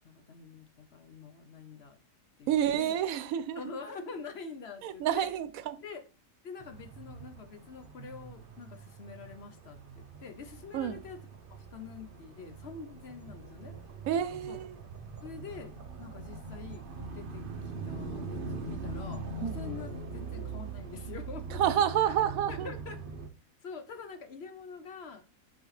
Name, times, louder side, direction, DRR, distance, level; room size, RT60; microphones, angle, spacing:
voice 1, 0.0-2.0 2.4-2.5 2.8-3.0 3.6-5.3 5.8-6.0 6.4-11.2 11.5-13.8 14.5-14.6 15.2-15.7 16.0-17.4 17.8-21.6 22.0-22.1 22.5-23.0 23.6-25.2, left 5 dB, 55° left, 0.9 m, -45 dB
voice 2, 2.5-3.6 4.8-5.8 10.7-11.0 14.1-14.8 19.4-19.6 21.6-22.7, right 10 dB, 80° right, 1.0 m, -29 dB
sound 1, 6.6-23.3, right 4 dB, 45° right, 0.8 m, -42 dB
6.3 x 5.5 x 3.2 m
omnidirectional pair, 1.4 m